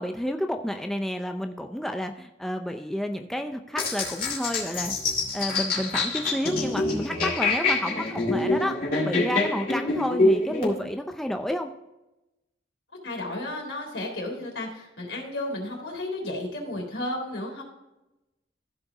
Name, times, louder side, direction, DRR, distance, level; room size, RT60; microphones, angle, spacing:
voice 1, 0.0-4.9 5.3-8.8 9.0-11.7, equal, ahead, 5 dB, 0.4 m, -30 dB
sound 1, 3.8-10.7, left 2 dB, 50° left, 2.7 m, -26 dB
voice 2, 13.0-17.6, left 1 dB, 80° left, -1 dB, 3.5 m, -33 dB
14.5 x 5.0 x 3.8 m, 0.96 s
head